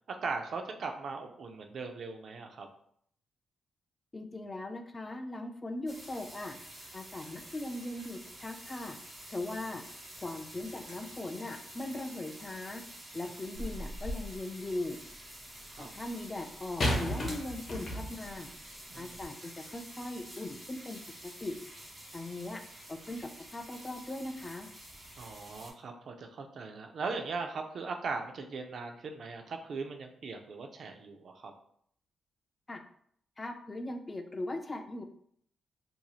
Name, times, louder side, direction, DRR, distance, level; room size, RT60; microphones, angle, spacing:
voice 1, 0.2-2.7 15.8-15.9 18.9-19.2 25.2-31.5, right 4 dB, 55° right, 4 dB, 0.4 m, -39 dB
voice 2, 4.1-6.6 6.9-9.0 9.3-9.8 10.2-12.8 13.1-15.0 15.8-18.5 19.0-21.0 21.4-21.6 22.1-22.6 22.9-24.7 32.7-32.8 33.4-35.0, left 2 dB, 20° left, 5 dB, 0.3 m, -39 dB
sound 1, 5.9-25.7, right 1 dB, 20° right, 0.9 m, -49 dB
sound 2, 13.5-14.4 16.8-18.3 19.1-19.2, left 1 dB, 50° left, 0.7 m, -34 dB
3.0 x 2.6 x 2.3 m, 0.66 s
cardioid pair, 120°, 0 cm